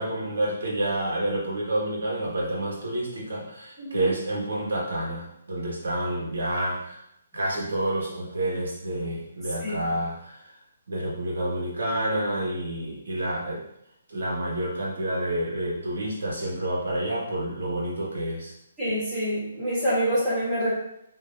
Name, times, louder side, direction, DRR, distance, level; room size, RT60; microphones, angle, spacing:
voice 1, 0.0-7.0 7.3-10.5 10.9-13.6 14.1-18.5, right 1 dB, 75° right, -3 dB, 1.6 m, -29 dB
voice 2, 3.8-4.1 9.6-9.8 18.8-20.7, equal, ahead, -14 dB, 1.3 m, -26 dB
5.5 x 3.1 x 2.6 m, 0.77 s
hypercardioid pair, 180°, 0 cm